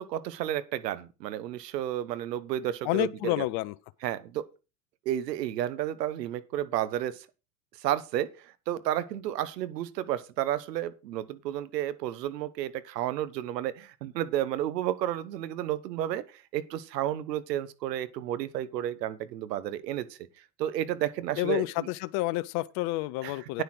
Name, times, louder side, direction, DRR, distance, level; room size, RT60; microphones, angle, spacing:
voice 1, 0.0-3.4 4.0-4.5 5.0-7.3 7.8-20.2 20.6-21.9 23.2-23.6, right 12 dB, 80° right, 1.2 m, -32 dB
voice 2, 2.8-3.7 21.4-23.6, left 19 dB, 50° left, 0.7 m, -29 dB
9.5 x 6.5 x 6.0 m
hypercardioid pair, 90°, 49 cm